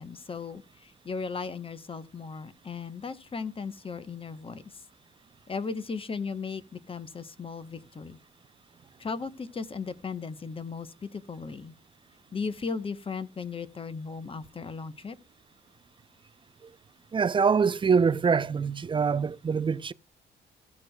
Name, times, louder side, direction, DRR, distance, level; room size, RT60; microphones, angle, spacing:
voice 1, 0.0-4.6 5.5-8.2 9.0-11.7 12.3-15.2, left 5 dB, 25° left, 0.9 m, -36 dB
voice 2, 17.1-19.9, right 5 dB, 25° right, 0.4 m, -24 dB
16.0 x 6.1 x 2.2 m
cardioid pair, 90°, 20 cm